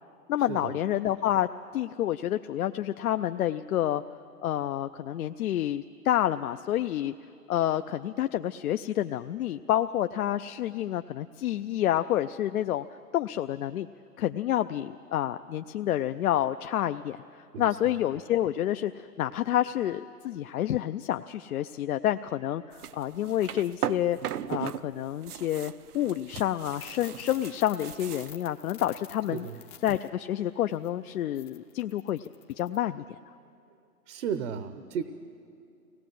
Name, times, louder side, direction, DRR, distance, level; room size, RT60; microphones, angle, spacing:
voice 1, 0.3-1.5 1.7-4.0 4.4-7.1 7.5-12.9 13.1-13.9 14.2-24.2 24.5-29.5 29.8-32.3 32.6-33.0, left 12 dB, 65° left, 9 dB, 0.6 m, -29 dB
sound 1, 22.7-24.8 25.1-28.4, right 10 dB, 75° right, 0.8 m, -37 dB
sound 2, 26.8-30.1 30.7-30.9 31.4-32.8, left 9 dB, 15° left, 0.6 m, -50 dB
voice 2, 34.1-35.0, right 7 dB, 50° right, 11 dB, 1.0 m, -33 dB
24.0 x 18.0 x 7.7 m, 2.6 s
hypercardioid pair, 130°, 46 cm